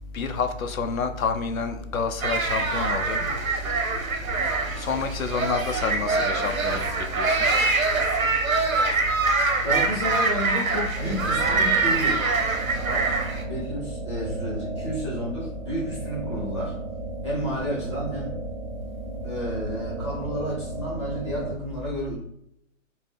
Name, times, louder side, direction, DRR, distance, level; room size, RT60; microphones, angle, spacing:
voice 1, 0.1-3.2 4.8-6.8 7.2-7.5, left 5 dB, 85° left, 7 dB, 0.6 m, -28 dB
sound 1, 2.2-13.4, right 3 dB, 90° right, 0.9 m, -24 dB
voice 2, 9.6-12.2 12.8-16.7 17.2-18.3 19.2-22.2, equal, 20° left, -5 dB, 0.9 m, -31 dB
sound 2, 11.0-21.6, right 3 dB, 55° right, 0.8 m, -35 dB
4.2 x 2.2 x 3.6 m, 0.72 s
hypercardioid pair, 175°, 40 cm